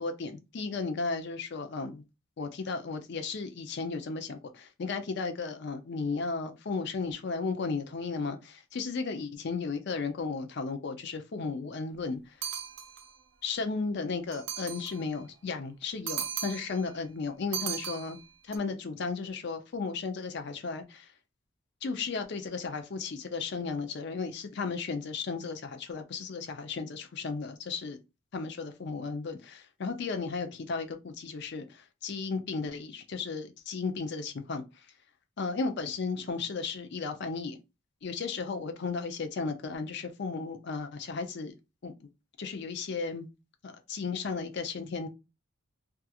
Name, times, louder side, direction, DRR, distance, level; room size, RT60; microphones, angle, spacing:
voice 1, 0.0-2.0 2.4-12.2 13.4-18.2 18.5-21.1 21.8-28.0 28.3-34.6 35.4-37.6 38.0-41.6 41.8-41.9 42.4-43.3 43.6-45.1, left 4 dB, 55° left, 0.5 m, -34 dB
sound 1, 12.4-13.2 14.3-15.1 16.1-16.9 17.5-18.6, right 9 dB, 60° right, 0.5 m, -37 dB
2.4 x 2.3 x 2.8 m
head